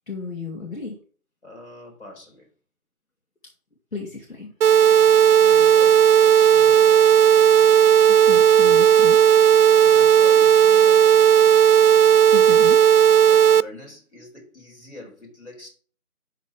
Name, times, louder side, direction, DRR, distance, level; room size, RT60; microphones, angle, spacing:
voice 1, 0.1-1.0 3.9-4.5 8.1-9.2 12.3-12.8, left 4 dB, 65° left, 3.0 m, -33 dB
voice 2, 1.4-2.5 5.4-7.5 9.7-11.6 13.3-15.7, left 2 dB, 50° left, 4.2 m, -43 dB
sound 1, 4.6-13.6, right 9 dB, 85° right, 0.5 m, -14 dB
12.5 x 4.3 x 3.5 m
figure-of-eight pair, 180°, 44 cm